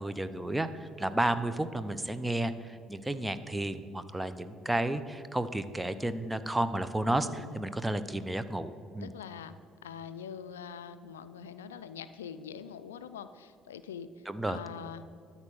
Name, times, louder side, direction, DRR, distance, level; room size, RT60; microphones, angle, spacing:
voice 1, 0.0-9.1 14.3-14.6, right 1 dB, 10° right, 12 dB, 0.6 m, -32 dB
voice 2, 7.2-7.6 9.0-9.6 9.8-15.1, left 7 dB, 90° left, 13 dB, 0.3 m, -44 dB
12.5 x 4.3 x 6.9 m, 2.3 s
hypercardioid pair, 55°, 0 cm